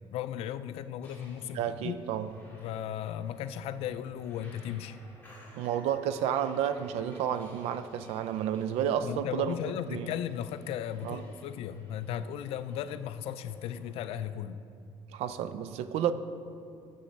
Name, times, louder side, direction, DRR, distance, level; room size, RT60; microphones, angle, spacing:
voice 1, 0.1-2.0 2.6-5.0 9.0-14.6, left 10 dB, 70° left, 13 dB, 0.4 m, -36 dB
sound 1, 1.0-14.3, left 1 dB, 15° left, 2.0 m, -55 dB
voice 2, 1.5-2.3 5.6-9.6 9.9-10.1 11.0-11.2 15.1-16.1, right 9 dB, 85° right, 12 dB, 0.5 m, -31 dB
7.3 x 7.1 x 5.2 m, 2.6 s
cardioid pair, 150°, 10 cm